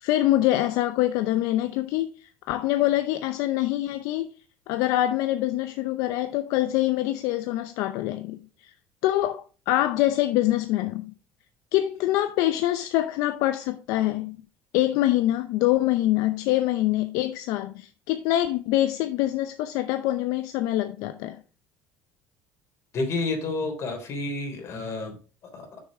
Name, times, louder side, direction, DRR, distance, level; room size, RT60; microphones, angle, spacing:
voice 1, 0.0-4.3 4.7-8.7 9.0-11.1 11.7-14.4 14.7-21.4, left 14 dB, 75° left, 0.6 m, -25 dB
voice 2, 22.9-25.8, left 3 dB, 50° left, 3.4 m, -30 dB
6.5 x 6.4 x 4.8 m
supercardioid pair, 95°, 6 cm